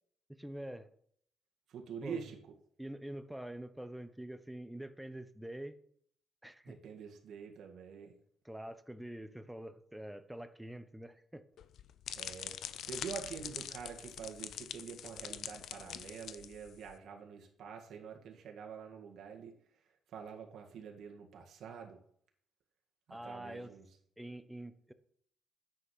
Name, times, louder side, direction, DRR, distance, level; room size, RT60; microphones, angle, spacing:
voice 1, 0.4-0.9 2.0-2.2 2.8-5.8 6.4-6.8 8.4-11.4 23.1-23.7 24.2-24.9, right 1 dB, 5° right, 11 dB, 1.0 m, -45 dB
voice 2, 1.7-2.4 6.6-8.2 12.2-19.8 20.1-22.0 23.1-23.9, right 6 dB, 70° right, 1 dB, 1.9 m, -46 dB
sound 1, 11.6-16.9, left 10 dB, 75° left, 0.7 m, -44 dB
9.8 x 7.6 x 6.3 m, 0.64 s
cardioid pair, 90°, 0 cm